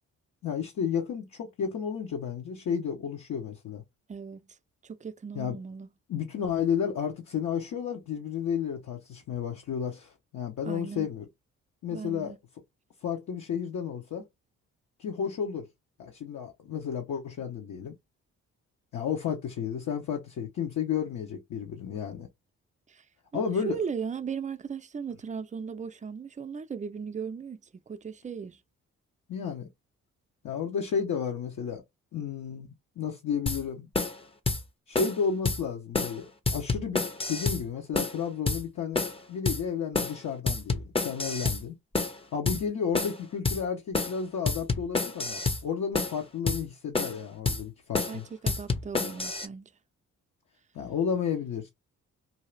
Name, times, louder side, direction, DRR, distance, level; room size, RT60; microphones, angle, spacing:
voice 1, 0.4-3.8 5.3-5.6 6.1-11.3 11.8-12.3 13.0-14.2 15.0-15.7 16.0-17.9 18.9-22.3 23.3-23.8 29.3-29.7 30.4-31.8 32.1-33.9 34.9-41.7 42.3-48.2 50.7-51.7, left 7 dB, 60° left, 0.9 m, -32 dB
voice 2, 4.1-4.5 4.8-5.9 10.6-11.1 11.9-12.4 22.9-23.0 23.3-27.6 27.9-28.6 42.5-42.6 48.1-49.7, right 6 dB, 20° right, 0.5 m, -37 dB
sound 1, 33.5-33.6 33.9-34.2 34.5-34.6 34.9-35.2 35.4-35.6 35.9-36.2 36.5-37.6 37.9-38.2 38.5-38.6 38.9-39.2 39.5-39.6 39.9-40.2 40.5-41.6 41.9-42.2 42.5-42.6 42.9-43.2 43.4-43.6 43.9-44.2 44.5-45.6 45.9-46.2 46.5-46.6 46.9-47.2 47.5-47.6 47.9-48.2 48.5-49.5, left 3 dB, 15° left, 0.7 m, -28 dB
2.7 x 2.4 x 3.2 m
supercardioid pair, 55°, 33 cm